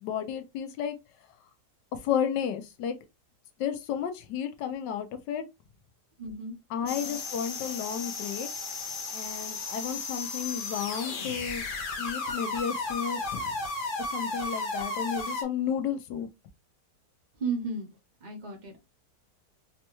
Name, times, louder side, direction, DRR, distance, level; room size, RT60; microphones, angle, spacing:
voice 1, 0.0-1.0 1.9-3.0 3.6-5.4 6.7-8.5 9.1-11.6 12.0-13.5 14.0-16.3, left 8 dB, 85° left, 1.3 m, -32 dB
voice 2, 6.2-6.5 17.4-17.9 18.2-18.8, right 4 dB, 35° right, 0.7 m, -33 dB
sound 1, 6.9-15.4, left 3 dB, 55° left, 0.5 m, -34 dB
4.2 x 2.2 x 2.9 m
omnidirectional pair, 1.8 m